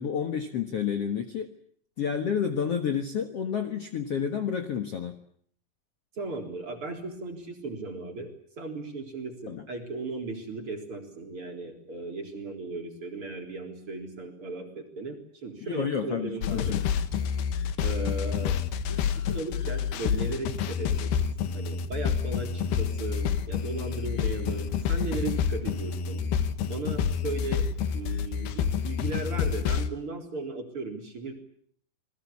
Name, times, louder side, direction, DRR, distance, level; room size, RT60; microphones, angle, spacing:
voice 1, 0.0-1.5 2.0-5.2 9.5-9.6 15.6-16.8, left 7 dB, 55° left, 6 dB, 1.9 m, -30 dB
voice 2, 6.2-16.8 17.8-18.6 18.9-21.2 21.5-26.2 26.7-27.7 27.9-31.3, right 3 dB, 35° right, 3 dB, 4.5 m, -36 dB
sound 1, 16.4-29.9, left 7 dB, 85° left, 3.3 m, -28 dB
28.5 x 20.5 x 8.5 m, 0.63 s
omnidirectional pair, 4.4 m